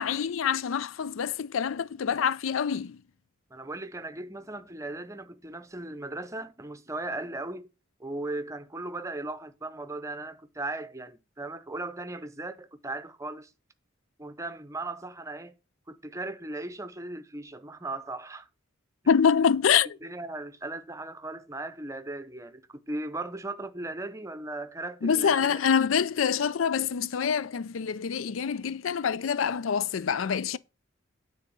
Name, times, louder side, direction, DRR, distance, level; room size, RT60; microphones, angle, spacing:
voice 1, 0.0-3.0 19.1-19.9 25.0-30.6, left 7 dB, 85° left, 0.4 m, -26 dB
voice 2, 3.5-7.7 8.0-13.5 14.2-15.5 15.9-18.5 19.7-25.6, right 2 dB, 15° right, 0.7 m, -37 dB
9.7 x 4.0 x 6.8 m
head